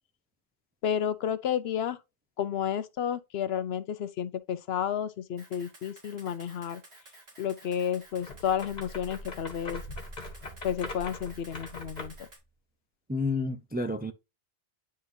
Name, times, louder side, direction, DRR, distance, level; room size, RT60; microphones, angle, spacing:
voice 1, 0.8-2.0 2.4-6.8 7.4-9.8 10.6-12.3, left 8 dB, 70° left, 0.8 m, -31 dB
Camera, 5.4-12.4, right 1 dB, 65° right, 2.9 m, -53 dB
sound 1, 8.2-12.3, left 2 dB, 40° left, 1.4 m, -41 dB
voice 2, 13.1-14.1, left 3 dB, 15° right, 0.4 m, -30 dB
9.6 x 3.8 x 2.7 m
omnidirectional pair, 1.1 m